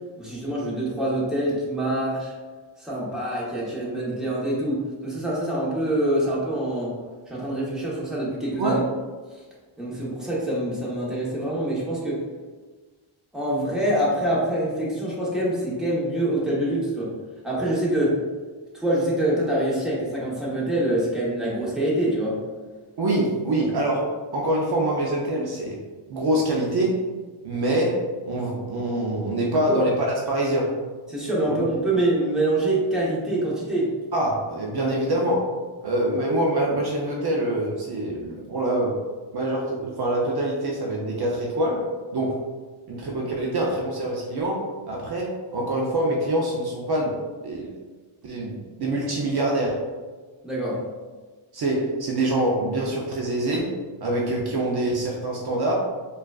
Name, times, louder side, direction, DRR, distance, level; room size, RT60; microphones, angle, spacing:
voice 1, 0.2-2.3 2.8-7.0 7.3-8.8 9.8-12.2 13.3-17.1 17.4-18.2 18.7-22.4 29.5-29.9 31.1-33.9 34.8-35.2 50.4-50.8, right 1 dB, ahead, -7 dB, 0.9 m, -25 dB
voice 2, 23.0-24.0 24.3-25.8 26.1-27.0 27.4-29.9 30.3-30.8 34.1-35.4 35.8-39.0 39.3-42.4 42.9-47.2 47.4-47.7 48.2-49.9 51.5-53.7 54.0-55.7, right 1 dB, 50° right, -2 dB, 0.6 m, -25 dB
4.7 x 2.4 x 2.3 m, 1.4 s
wide cardioid pair, 125°, 49 cm